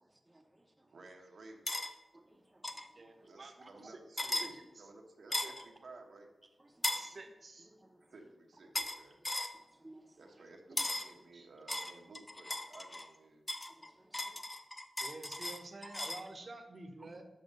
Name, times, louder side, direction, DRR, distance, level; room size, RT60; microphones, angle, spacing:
voice 1, 0.3-0.6 2.1-2.8 3.2-3.3 6.7-7.2 7.8-8.0 9.5-10.1 13.8-14.4 17.0-17.1, right 1 dB, 15° right, 3 dB, 0.7 m, -60 dB
voice 2, 0.9-1.9 3.2-6.3 8.0-9.2 10.2-13.5, right 2 dB, 75° right, 2 dB, 1.0 m, -56 dB
sound 1, 1.7-1.9 2.6-2.9 4.2-4.5 5.3-5.6 6.8-7.1 8.7-9.0 9.2-9.5 10.8-11.1 11.7-13.1 13.5-16.3, left 1 dB, 20° left, 0.6 m, -37 dB
voice 3, 3.0-4.0 4.4-4.8 5.4-5.5 6.9-7.7 10.7-11.0 11.3-11.5 15.0-17.2, right 2 dB, 50° right, 6 dB, 0.9 m, -50 dB
6.3 x 5.5 x 5.3 m, 1.1 s
wide cardioid pair, 90°, 0 cm